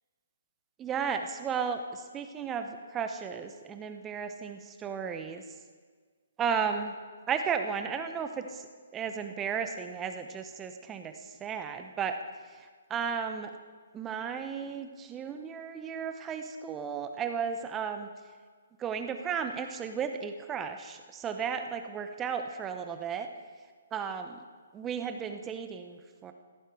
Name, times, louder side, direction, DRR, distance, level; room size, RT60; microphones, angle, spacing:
voice 1, 0.8-5.4 6.4-6.9 7.3-8.7 8.9-12.2 12.9-13.5 13.9-18.1 18.8-23.3 23.9-24.4 24.7-26.3, right 6 dB, 15° right, 7 dB, 0.9 m, -34 dB
16.5 x 14.0 x 4.9 m, 1.5 s
figure-of-eight pair, 135°, 0 cm